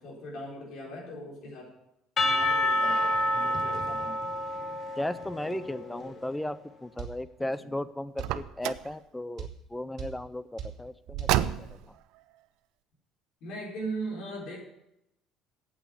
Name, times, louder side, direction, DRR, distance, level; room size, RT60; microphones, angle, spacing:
voice 1, 0.0-1.7 2.3-3.0 3.4-4.3 5.4-6.1 7.4-7.7 13.4-14.6, right 1 dB, 60° left, -3 dB, 4.4 m, -39 dB
Percussion / Church bell, 2.2-6.1, left 1 dB, 35° left, 1.1 m, -28 dB
voice 2, 5.0-11.9, left 1 dB, 5° left, 15 dB, 0.5 m, -36 dB
sound 1, 7.0-7.2 8.2-8.4 9.4-9.6 10.0-10.2 10.6-10.8 11.2-11.4, right 9 dB, 50° right, 2.4 m, -38 dB
Car, 8.2-8.9 11.1-11.9, right 13 dB, 80° right, 0.5 m, -29 dB
8.5 x 8.4 x 7.4 m, 0.83 s
cardioid pair, 130°, 0 cm